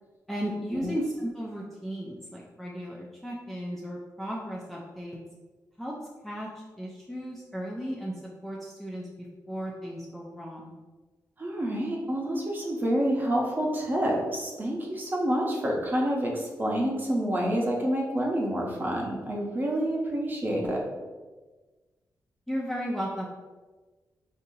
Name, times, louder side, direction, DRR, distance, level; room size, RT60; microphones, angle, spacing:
voice 1, 0.3-5.2 5.8-6.0 6.2-10.7 22.5-23.2, equal, 5° left, -3 dB, 0.5 m, -35 dB
voice 2, 11.4-20.9, equal, 25° right, -2 dB, 0.8 m, -28 dB
5.3 x 2.7 x 2.7 m, 1.3 s
wide cardioid pair, 115°, 7 cm